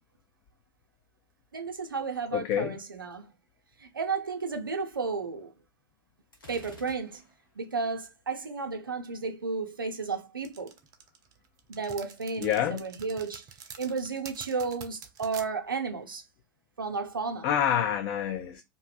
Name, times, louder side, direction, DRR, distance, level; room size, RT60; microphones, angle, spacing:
voice 1, 1.5-3.3 3.8-5.5 6.5-7.2 7.6-10.7 11.7-13.4 13.8-16.2 16.8-17.5, right 4 dB, 80° right, 0.5 m, -33 dB
voice 2, 2.3-2.8 12.4-12.9 17.4-18.6, left 9 dB, 45° left, 0.3 m, -27 dB
Gunshot gunfire, 6.3-7.6, left 3 dB, 85° left, 0.9 m, -52 dB
sound 1, 10.4-15.5, right 7 dB, 35° right, 0.5 m, -46 dB
2.6 x 2.1 x 2.4 m
figure-of-eight pair, 90°, 11 cm